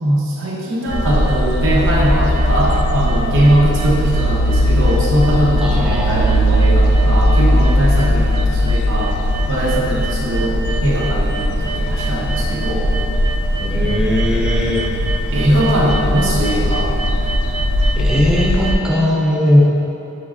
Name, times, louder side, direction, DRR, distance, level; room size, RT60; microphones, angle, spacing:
voice 1, 0.0-9.1 9.5-12.9 13.8-13.9 15.3-16.9, right 1 dB, 60° right, -4 dB, 0.7 m, -20 dB
sound 1, 0.7-18.8, right 3 dB, 90° right, 0.3 m, -30 dB
sound 2, 0.9-18.7, equal, 90° left, 0.4 m, -18 dB
voice 2, 5.6-7.1 13.6-14.8 18.0-19.6, left 1 dB, 5° right, -5 dB, 0.4 m, -19 dB
5.7 x 3.1 x 2.4 m, 3.0 s
head